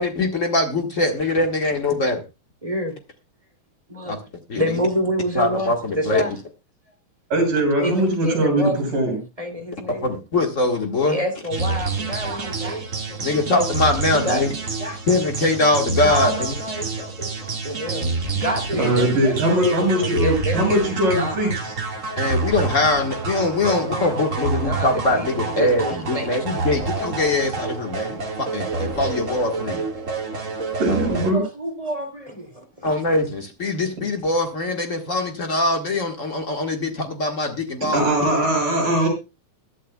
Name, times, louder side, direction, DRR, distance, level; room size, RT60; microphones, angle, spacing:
voice 1, 0.0-2.2 4.0-4.2 4.5-4.7 5.3-6.2 10.0-11.2 13.2-14.5 15.1-16.5 22.2-29.8 32.8-38.0, left 2 dB, 70° left, 3 dB, 0.7 m, -22 dB
voice 2, 2.6-2.9 3.9-4.2 4.5-6.3 7.8-8.8 9.4-10.1 11.0-12.8 13.1-13.5 14.1-14.5 14.8-15.0 16.0-21.5 23.7-26.3 31.1-32.9, equal, 10° right, 5 dB, 2.1 m, -28 dB
voice 3, 7.3-9.2 18.8-21.7 30.8-31.4 37.9-39.1, right 1 dB, 70° right, 3 dB, 7.8 m, -20 dB
sound 1, 11.5-31.3, right 3 dB, 35° right, 1.4 m, -28 dB
21.0 x 12.0 x 2.3 m, 0.27 s
omnidirectional pair, 4.1 m